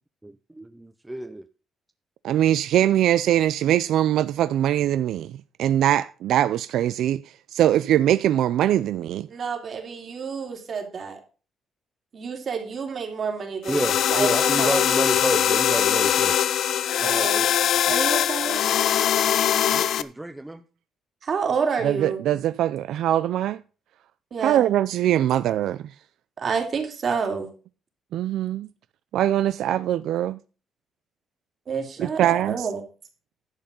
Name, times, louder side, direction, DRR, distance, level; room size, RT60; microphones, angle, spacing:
voice 1, 0.2-1.5 13.7-16.4 19.7-20.6 32.0-32.1, right 1 dB, 10° right, 0.6 m, -30 dB
voice 2, 2.2-5.3 5.6-7.2 7.5-9.3 21.8-23.6 24.4-25.8 28.1-28.7 29.1-30.4 32.0-32.7, right 12 dB, 75° right, 0.4 m, -22 dB
voice 3, 9.3-11.2 12.1-14.9 17.0-17.5 17.9-18.6 21.2-22.2 24.3-24.7 26.4-27.5 31.7-32.8, right 5 dB, 40° right, 3.0 m, -29 dB
sound 1, 13.6-20.0, left 10 dB, 60° left, 0.7 m, -22 dB
11.5 x 7.9 x 5.3 m
cardioid pair, 160°, 0 cm